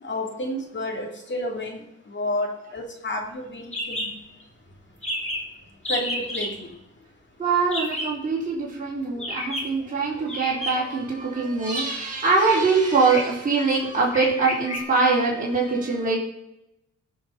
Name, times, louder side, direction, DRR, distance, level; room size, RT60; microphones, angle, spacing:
voice 1, 0.0-4.1 5.9-6.7, left 1 dB, 40° left, 2 dB, 2.6 m, -31 dB
sound 1, 3.7-4.1 4.4-4.5 4.7-4.8 5.0-5.5 5.8-6.5 7.7-8.2 9.2-9.7 10.3-11.0 11.6-11.8 12.4-12.6 13.0-13.4 14.1-14.8, left 1 dB, 20° left, 3.2 m, -30 dB
voice 2, 7.4-16.2, right 4 dB, 25° right, -6 dB, 4.1 m, -23 dB
17.0 x 5.7 x 5.8 m, 0.85 s
cardioid pair, 100°, 29 cm